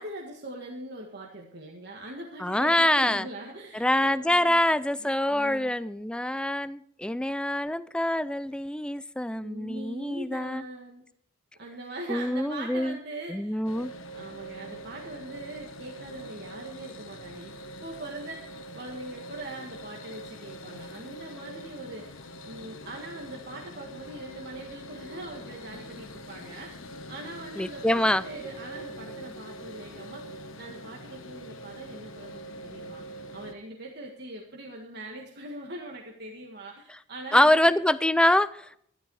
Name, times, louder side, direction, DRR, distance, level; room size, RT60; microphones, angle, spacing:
voice 1, 0.0-4.7 5.0-5.7 9.4-11.0 11.6-13.9 14.1-30.3 30.6-33.0 33.3-37.7, right 1 dB, 55° right, -1 dB, 1.8 m, -42 dB
voice 2, 2.4-3.3 3.7-10.6 12.1-13.0 13.3-13.9 27.6-28.2 37.3-38.8, left 1 dB, 5° left, 15 dB, 0.4 m, -25 dB
sound 1, 13.6-33.5, right 1 dB, 85° left, 1.4 m, -43 dB
13.0 x 11.5 x 4.8 m, 0.68 s
head